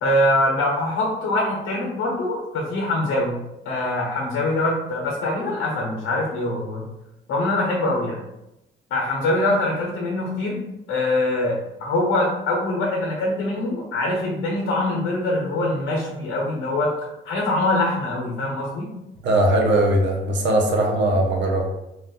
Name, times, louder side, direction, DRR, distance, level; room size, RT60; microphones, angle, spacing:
voice 1, 0.0-3.4 3.6-6.9 7.3-8.2 8.9-10.6 10.9-16.9 17.2-18.9, left 1 dB, 85° left, -2 dB, 0.8 m, -23 dB
voice 2, 19.2-21.7, right 1 dB, 65° right, 1 dB, 0.8 m, -19 dB
2.4 x 2.3 x 3.6 m, 0.91 s
cardioid pair, 90°, 20 cm